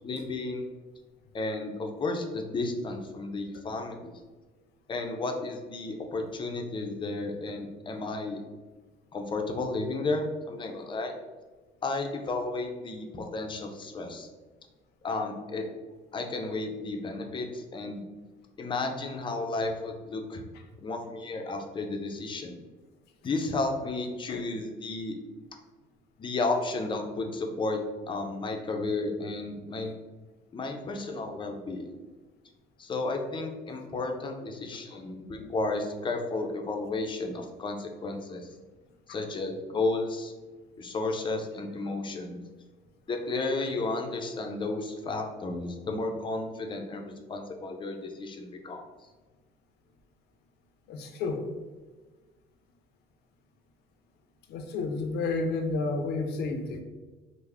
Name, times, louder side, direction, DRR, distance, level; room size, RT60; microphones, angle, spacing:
voice 1, 0.0-0.7 1.3-4.1 4.9-8.4 9.1-11.1 11.8-14.3 15.0-15.6 16.1-18.1 18.6-20.4 20.8-22.6 23.2-25.2 26.2-27.8 28.1-29.9 30.5-31.9 32.8-38.5 39.1-40.3 40.8-42.4 43.1-48.8, left 3 dB, 30° left, 3 dB, 0.5 m, -33 dB
voice 2, 50.9-51.5 54.5-56.8, left 3 dB, 80° left, 5 dB, 0.5 m, -31 dB
3.4 x 2.1 x 3.4 m, 1.3 s
cardioid pair, 110°, 17 cm